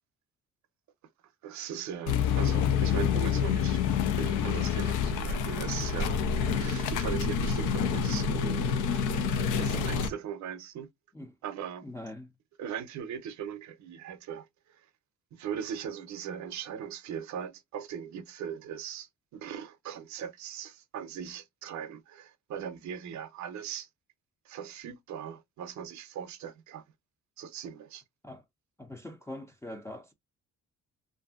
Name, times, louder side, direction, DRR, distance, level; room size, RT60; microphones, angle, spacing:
voice 1, 1.4-3.8 4.2-10.9 11.4-11.9 12.6-14.9 15.3-23.9 24.5-26.8 27.4-28.0, right 8 dB, 70° right, 0.6 m, -39 dB
sound 1, 2.1-10.1, left 7 dB, 85° left, 0.6 m, -28 dB
voice 2, 11.8-12.3 28.2-28.4 28.8-30.1, left 1 dB, 10° left, 0.4 m, -42 dB
2.6 x 2.5 x 2.3 m
cardioid pair, 90°, 30 cm